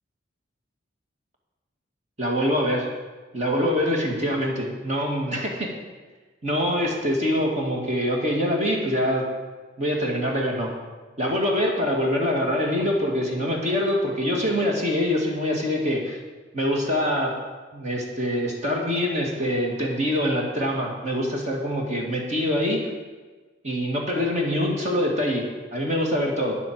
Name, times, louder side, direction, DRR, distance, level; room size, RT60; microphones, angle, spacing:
voice 1, 2.2-2.9 3.3-5.7 6.4-9.2 9.8-10.7 11.2-16.2 16.5-17.3 17.7-22.8 23.6-26.6, equal, 35° right, -1 dB, 2.3 m, -24 dB
9.7 x 7.9 x 7.6 m, 1.3 s
head